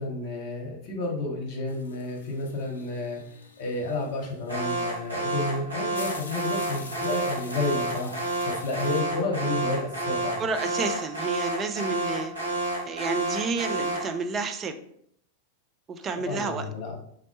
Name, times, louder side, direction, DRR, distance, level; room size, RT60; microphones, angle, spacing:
voice 1, 0.0-3.2 3.6-8.1 8.4-10.4 16.3-17.0, left 2 dB, 50° left, 0 dB, 0.9 m, -31 dB
sound 1, 1.7-9.0, left 4 dB, 70° left, 0.4 m, -45 dB
Alarm, 4.5-14.2, right 2 dB, 80° right, 0.9 m, -30 dB
voice 2, 10.4-14.8 15.9-16.6, right 4 dB, 25° right, 7 dB, 0.4 m, -30 dB
3.9 x 2.0 x 3.0 m, 0.68 s
figure-of-eight pair, 90°, 0 cm